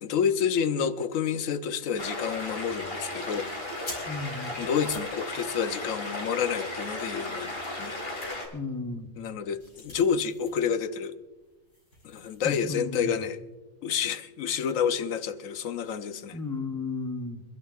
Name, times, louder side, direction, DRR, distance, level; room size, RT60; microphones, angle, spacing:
voice 1, 0.0-3.5 4.6-8.0 9.2-11.1 12.0-13.4 13.8-16.4, left 7 dB, 85° left, 1.1 m, -29 dB
sound 1, 2.0-8.5, left 2 dB, 45° left, 2.6 m, -35 dB
sound 2, 3.1-6.2 6.7-10.6 10.9-11.0 11.4-12.6, left 1 dB, 65° left, 5.3 m, -49 dB
voice 2, 4.0-4.5 8.5-9.1 12.4-13.2 16.3-17.4, left 3 dB, 15° left, 0.8 m, -34 dB
27.0 x 12.0 x 2.4 m
omnidirectional pair, 1.3 m